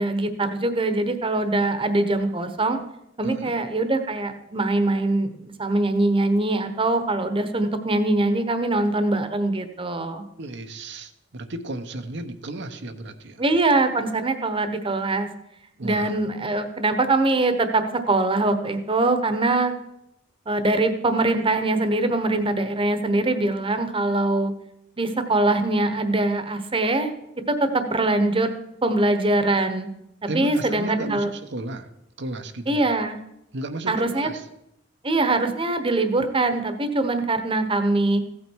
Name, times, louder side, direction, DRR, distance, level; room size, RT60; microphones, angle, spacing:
voice 1, 0.0-2.8 3.2-10.2 13.4-15.3 15.8-19.7 20.5-24.5 25.0-27.1 27.5-28.5 28.8-29.9 30.2-31.3 32.7-33.2 33.9-34.3 35.0-38.2, right 2 dB, 30° right, 9 dB, 1.1 m, -23 dB
voice 2, 10.4-13.4 15.8-16.2 30.3-31.9 32.2-32.8 33.5-34.4, right 2 dB, 65° right, 7 dB, 1.0 m, -34 dB
15.5 x 8.7 x 4.6 m, 0.82 s
head